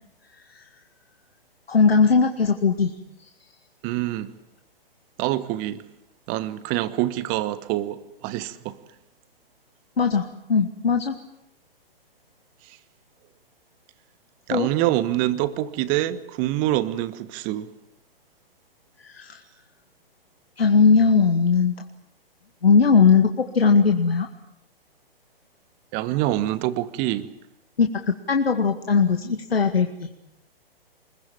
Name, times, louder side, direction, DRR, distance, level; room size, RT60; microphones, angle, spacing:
voice 1, 1.7-2.9 10.0-11.1 14.5-14.7 19.0-19.4 20.6-21.7 22.6-24.3 27.8-30.1, left 5 dB, 80° left, 2.1 m, -19 dB
voice 2, 3.8-4.3 5.2-5.8 6.3-8.8 14.5-17.7 25.9-27.3, right 14 dB, 25° right, 1.4 m, -25 dB
25.0 x 22.0 x 9.0 m
figure-of-eight pair, 130°, 30 cm